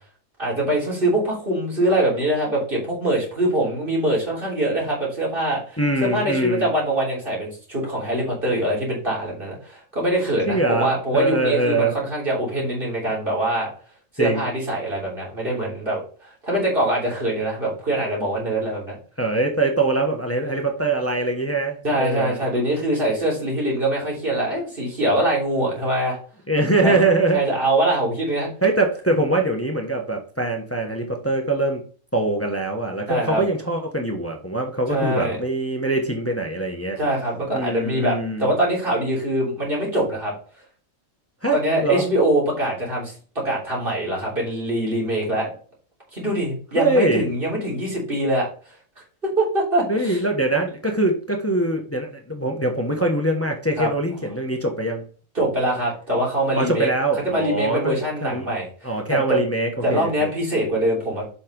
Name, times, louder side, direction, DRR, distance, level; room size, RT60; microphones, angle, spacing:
voice 1, 0.4-13.7 14.1-16.0 16.4-19.0 21.8-26.2 26.8-27.0 27.3-28.5 33.1-33.4 34.9-35.4 37.0-40.3 41.5-43.1 43.4-45.5 46.1-48.5 49.0-50.2 53.8-53.9 55.4-56.9 57.2-59.4 59.8-61.3, right 1 dB, 40° right, -4 dB, 3.5 m, -23 dB
voice 2, 5.8-6.7 10.5-12.0 14.2-14.5 19.2-22.4 26.5-27.4 28.6-31.8 32.1-37.0 37.5-38.5 41.4-42.0 46.7-47.2 49.9-55.0 56.5-58.5 58.8-60.3, right 2 dB, 10° left, 2 dB, 1.1 m, -23 dB
7.4 x 5.7 x 3.9 m, 0.41 s
omnidirectional pair, 1.4 m